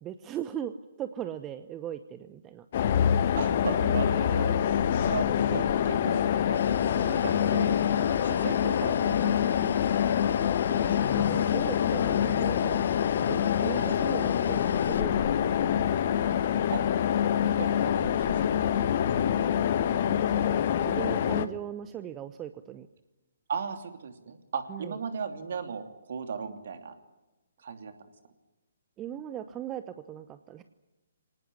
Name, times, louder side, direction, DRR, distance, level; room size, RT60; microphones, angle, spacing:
voice 1, 0.0-2.7 7.3-7.5 10.4-13.0 13.3-15.7 19.7-19.8 20.1-22.9 24.7-25.0 29.0-30.6, right 10 dB, 20° right, 11 dB, 0.9 m, -39 dB
sound 1, 2.7-21.5, left 9 dB, 40° left, 1.3 m, -26 dB
voice 2, 3.4-6.2 6.5-10.0 10.7-11.0 13.7-13.9 16.7-16.8 17.6-18.9 23.5-26.9 27.6-27.9, right 6 dB, 50° right, 7 dB, 2.8 m, -37 dB
sound 2, 6.5-15.0, left 7 dB, 60° left, 0.8 m, -39 dB
25.0 x 19.0 x 9.7 m, 1.1 s
figure-of-eight pair, 130°, 0 cm